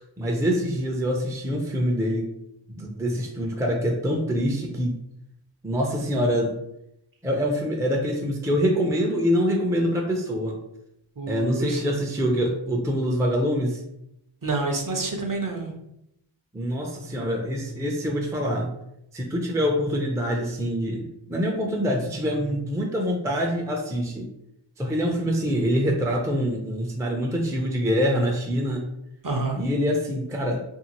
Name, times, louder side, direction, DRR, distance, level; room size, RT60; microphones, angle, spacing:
voice 1, 0.2-2.3 2.7-5.0 5.6-6.5 7.2-10.6 11.3-13.8 16.5-18.7 19.1-24.3 24.8-28.8 29.6-30.6, equal, 5° right, 1 dB, 0.4 m, -25 dB
voice 2, 11.2-11.8 14.4-15.7 29.2-29.6, right 3 dB, 45° right, 1 dB, 0.7 m, -28 dB
2.7 x 2.4 x 2.9 m, 0.81 s
wide cardioid pair, 50°, 48 cm